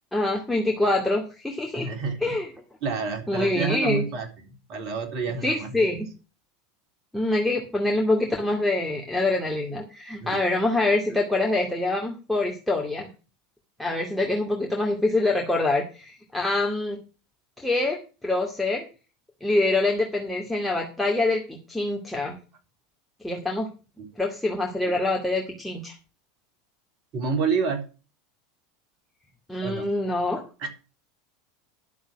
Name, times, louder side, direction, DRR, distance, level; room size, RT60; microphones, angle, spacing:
voice 1, 0.1-1.9 2.2-2.5 3.3-4.1 5.4-6.1 7.1-13.1 13.8-17.0 17.6-18.0 18.2-18.8 19.4-22.4 23.2-23.7 24.2-26.0 29.5-30.4, left 2 dB, 5° left, -1 dB, 2.3 m, -25 dB
voice 2, 1.7-2.3 2.8-5.7 10.2-10.4 24.0-24.1 27.1-27.9 29.6-29.9 30.6-30.7, right 5 dB, 45° right, 5 dB, 3.6 m, -29 dB
11.0 x 7.1 x 6.2 m, 0.33 s
figure-of-eight pair, 80°, 0 cm